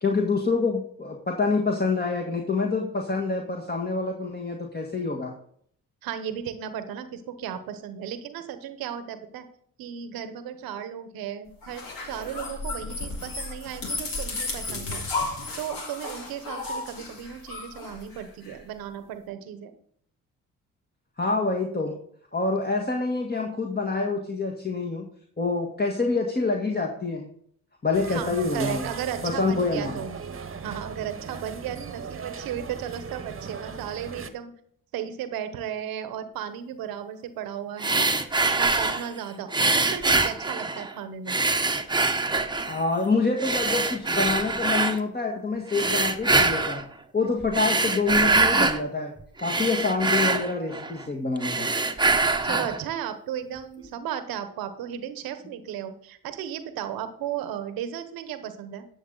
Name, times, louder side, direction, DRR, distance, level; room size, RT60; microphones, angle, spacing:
voice 1, 0.0-5.3 21.2-22.0 22.3-25.1 25.4-27.3 27.8-28.9 29.2-30.0 42.7-46.9 47.1-49.1 49.4-51.7, left 3 dB, 25° left, 1 dB, 1.6 m, -26 dB
voice 2, 6.0-9.5 9.8-15.0 15.6-19.7 28.1-30.2 30.6-34.5 34.9-38.1 38.6-41.4 52.4-58.9, right 9 dB, 85° right, 10 dB, 1.1 m, -35 dB
sound 1, 11.6-18.6, left 3 dB, 75° left, 2.2 m, -34 dB
sound 2, 27.9-34.3, right 5 dB, 40° right, 1.1 m, -38 dB
sound 3, 37.8-39.1 39.5-40.9 41.3-42.8 43.4-45.0 45.7-46.8 47.4-48.8 49.2-51.0 51.4-52.8, right 3 dB, 10° right, 1.0 m, -24 dB
11.5 x 6.8 x 3.9 m, 0.63 s
supercardioid pair, 55°, 35 cm